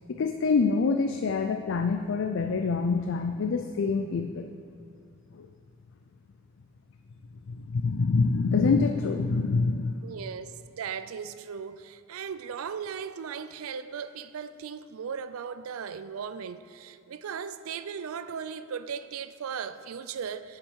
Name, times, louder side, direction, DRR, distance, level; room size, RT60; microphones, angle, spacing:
voice 1, 0.1-4.5 5.4-5.5 7.5-9.9, left 4 dB, 60° left, 0.4 m, -26 dB
voice 2, 10.0-20.6, right 7 dB, 80° right, 0.4 m, -37 dB
7.2 x 6.6 x 6.3 m
head